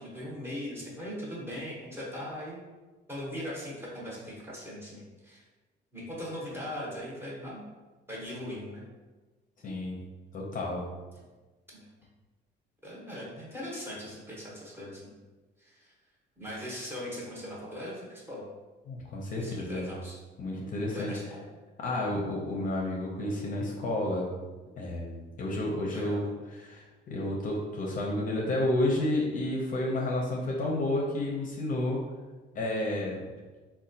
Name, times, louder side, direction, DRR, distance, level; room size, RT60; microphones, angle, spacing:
voice 1, 0.0-2.6 3.1-5.4 5.9-7.6 8.1-8.8 11.7-11.9 12.8-15.2 15.6-15.9 16.4-18.4 19.4-20.2 20.9-21.4 25.9-26.2, equal, 10° right, -5 dB, 0.9 m, -39 dB
voice 2, 9.6-10.0 10.3-10.8 18.9-19.9 20.4-21.1 21.8-24.3 24.8-32.0 32.5-33.2, left 1 dB, 40° left, -2 dB, 0.6 m, -31 dB
4.1 x 2.2 x 2.7 m, 1.2 s
cardioid pair, 145°, 20 cm